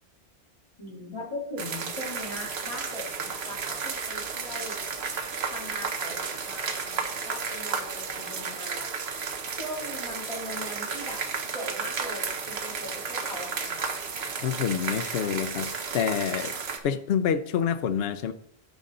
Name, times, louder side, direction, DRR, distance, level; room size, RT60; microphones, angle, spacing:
voice 1, 0.8-4.8 5.5-8.9 9.6-11.2 11.5-13.9, left 1 dB, 25° left, -5 dB, 2.9 m, -39 dB
sound 1, 1.6-16.8, right 5 dB, 75° right, 1.2 m, -33 dB
voice 2, 14.4-16.6 16.8-18.3, left 8 dB, 70° left, 10 dB, 0.8 m, -27 dB
13.0 x 5.4 x 3.8 m, 0.72 s
omnidirectional pair, 1.1 m